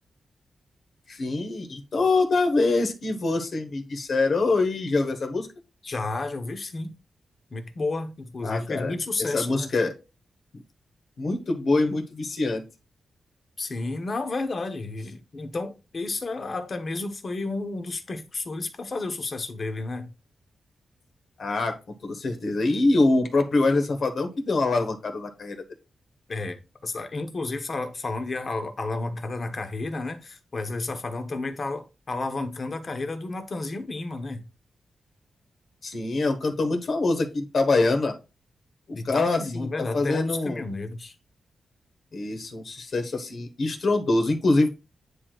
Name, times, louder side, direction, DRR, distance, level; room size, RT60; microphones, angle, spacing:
voice 1, 1.1-5.5 8.4-8.9 9.3-9.9 11.2-12.6 21.4-25.6 35.8-38.1 39.0-39.7 39.9-40.6 42.1-44.7, left 3 dB, 55° left, 1.3 m, -24 dB
voice 2, 5.8-6.9 7.5-9.7 13.6-20.1 26.3-34.4 38.9-41.1, left 3 dB, 40° left, 1.0 m, -31 dB
9.6 x 4.5 x 2.4 m
wide cardioid pair, 130°, 0 cm